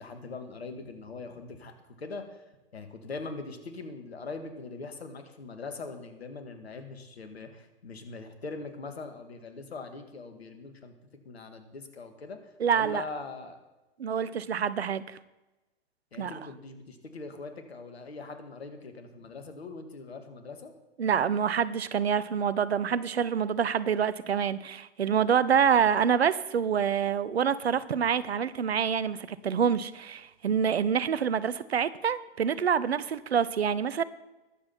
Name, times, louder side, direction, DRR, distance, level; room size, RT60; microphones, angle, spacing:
voice 1, 0.0-1.7 2.0-2.4 2.7-10.9 11.3-13.6 16.1-20.7, left 3 dB, 75° left, 7 dB, 2.0 m, -41 dB
voice 2, 12.6-13.0 14.0-15.0 16.2-16.4 21.0-34.0, right 7 dB, 75° right, 17 dB, 0.8 m, -26 dB
21.0 x 7.6 x 4.4 m, 1.0 s
figure-of-eight pair, 100°, 32 cm